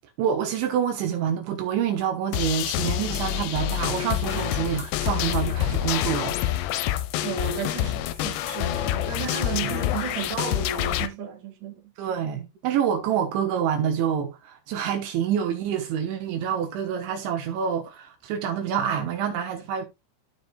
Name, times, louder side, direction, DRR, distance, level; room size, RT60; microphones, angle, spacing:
voice 1, 0.2-6.6 9.6-9.7 12.0-19.9, right 8 dB, 75° right, 3.1 m, -27 dB
sound 1, 2.3-11.1, left 13 dB, 80° left, 2.8 m, -27 dB
voice 2, 7.2-11.9, right 8 dB, 55° right, 2.3 m, -33 dB
14.0 x 4.9 x 2.3 m
omnidirectional pair, 5.8 m